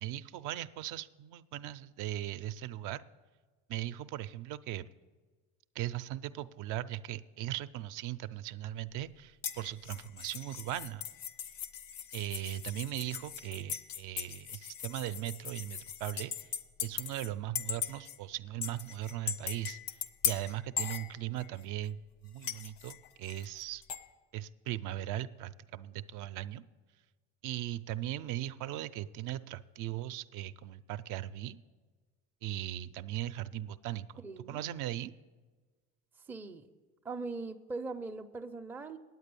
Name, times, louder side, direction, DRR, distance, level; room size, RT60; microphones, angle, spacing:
voice 1, 0.0-3.0 3.7-4.9 5.7-11.0 12.1-16.5 16.8-23.8 24.3-26.6 27.4-31.6 32.4-34.2 34.5-35.1, right 13 dB, 65° right, 12 dB, 0.5 m, -39 dB
sound 1, 9.4-17.3 17.6-18.2 18.6-21.6 22.4-24.0, left 8 dB, 70° left, 0.7 m, -39 dB
voice 2, 34.2-34.7 36.3-36.7 37.0-39.0, right 3 dB, 5° right, 4 dB, 0.4 m, -40 dB
9.4 x 8.1 x 6.8 m, 1.3 s
supercardioid pair, 110°, 34 cm